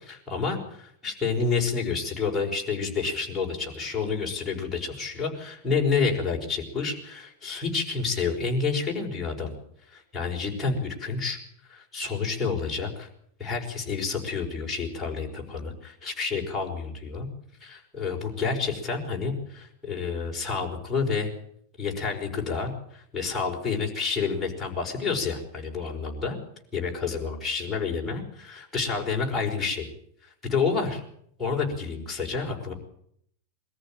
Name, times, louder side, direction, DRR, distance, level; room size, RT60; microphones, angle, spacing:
voice 1, 0.1-9.5 9.9-11.4 11.7-13.1 13.4-17.3 17.6-21.3 21.8-26.4 26.7-29.9 30.2-31.0 31.4-32.7, left 5 dB, 5° left, -3 dB, 5.1 m, -29 dB
22.5 x 14.0 x 9.0 m, 0.69 s
supercardioid pair, 165°, 0 cm